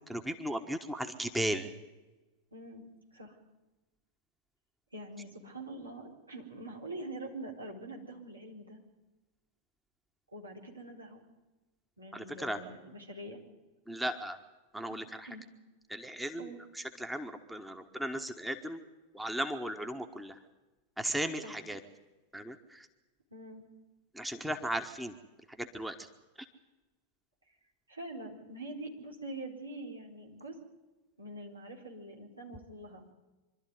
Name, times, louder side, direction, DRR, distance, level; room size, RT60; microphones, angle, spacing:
voice 1, 0.1-1.7 12.1-12.6 13.9-14.4 14.7-15.3 15.9-18.8 19.1-20.4 21.0-21.8 22.3-22.9 24.1-25.1 25.6-26.1, right 1 dB, 5° right, 7 dB, 1.4 m, -36 dB
voice 2, 2.5-2.8 3.1-3.4 4.9-8.8 10.3-11.2 12.0-13.4 14.9-15.5 16.4-16.6 21.4-21.5 23.3-23.6 27.9-30.6 31.2-33.0, right 2 dB, 80° right, 0 dB, 4.2 m, -44 dB
25.0 x 12.5 x 9.5 m, 1.1 s
figure-of-eight pair, 90°, 0 cm